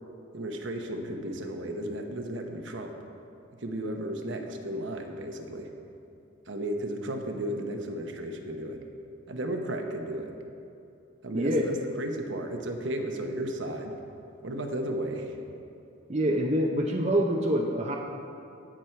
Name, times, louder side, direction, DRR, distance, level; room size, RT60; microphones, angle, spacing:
voice 1, 0.3-2.9 3.6-5.7 6.5-8.8 9.3-10.3 11.2-13.9 14.4-15.4, right 1 dB, 65° right, 3 dB, 1.0 m, -34 dB
voice 2, 11.3-11.7 16.1-18.0, equal, 30° right, 0 dB, 0.6 m, -25 dB
16.5 x 6.3 x 4.5 m, 2.7 s
head